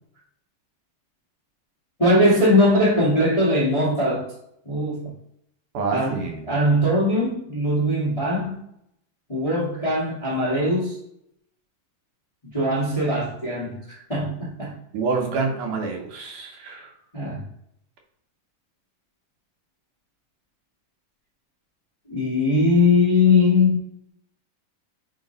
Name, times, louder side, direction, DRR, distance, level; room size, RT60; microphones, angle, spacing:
voice 1, 2.0-4.2 4.6-5.1 5.9-6.2 6.5-8.6 9.3-11.0 12.5-13.8 14.1-14.7 17.1-17.4 22.1-23.8, left 2 dB, 20° left, -6 dB, 1.0 m, -20 dB
voice 2, 5.7-6.6 14.9-16.9, right 4 dB, 75° right, 2 dB, 2.4 m, -27 dB
5.2 x 4.6 x 3.9 m, 0.76 s
omnidirectional pair, 3.7 m